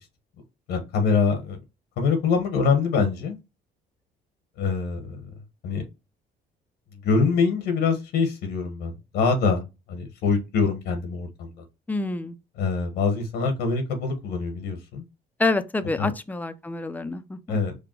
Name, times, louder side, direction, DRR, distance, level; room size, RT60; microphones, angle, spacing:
voice 1, 0.7-1.6 2.0-3.4 4.6-5.2 5.6-5.8 7.0-9.6 9.9-11.5 12.6-15.0 16.0-16.1 17.5-17.8, left 5 dB, 85° left, 1.3 m, -24 dB
voice 2, 11.9-12.4 15.4-17.6, left 2 dB, 10° left, 0.5 m, -27 dB
5.1 x 2.3 x 4.5 m
cardioid pair, 110°, 17 cm